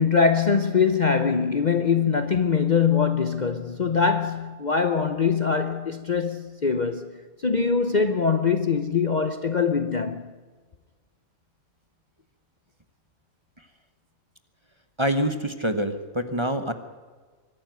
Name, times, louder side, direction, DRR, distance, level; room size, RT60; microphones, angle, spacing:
voice 1, 0.0-10.3, left 5 dB, 40° left, 0.8 m, -23 dB
voice 2, 15.0-16.7, right 1 dB, 25° right, 1.0 m, -25 dB
23.0 x 12.0 x 9.2 m
omnidirectional pair, 1.4 m